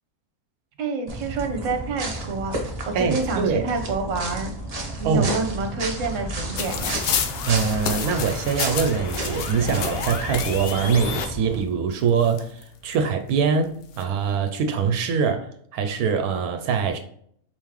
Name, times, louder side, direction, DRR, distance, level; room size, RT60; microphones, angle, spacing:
voice 1, 0.8-2.6 2.8-4.5 5.0-7.0, right 4 dB, 65° right, 1.1 m, -28 dB
sound 1, 1.1-11.6, right 1 dB, 35° right, 0.7 m, -32 dB
voice 2, 2.9-3.6 5.0-5.3 7.4-17.0, right 6 dB, 85° right, 1.1 m, -23 dB
sound 2, 4.7-11.2, left 5 dB, 55° left, 0.7 m, -36 dB
sound 3, 6.6-10.7 11.6-11.7 12.0-12.9 13.7-14.0, left 7 dB, 75° left, 1.1 m, -30 dB
4.6 x 3.7 x 3.0 m
omnidirectional pair, 1.5 m